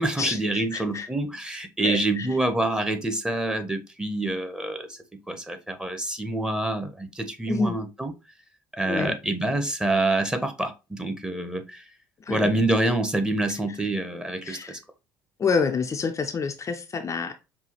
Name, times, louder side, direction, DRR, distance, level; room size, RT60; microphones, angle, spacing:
voice 1, 0.0-5.0 5.3-8.1 8.7-11.8 12.3-14.8, right 2 dB, 5° right, 0.9 m, -26 dB
voice 2, 0.7-1.1 1.8-2.0 7.5-7.7 8.9-9.1 12.3-12.4 14.5-14.8 15.4-17.3, left 5 dB, 30° left, 0.5 m, -27 dB
5.5 x 2.3 x 3.0 m
figure-of-eight pair, 60°, 10 cm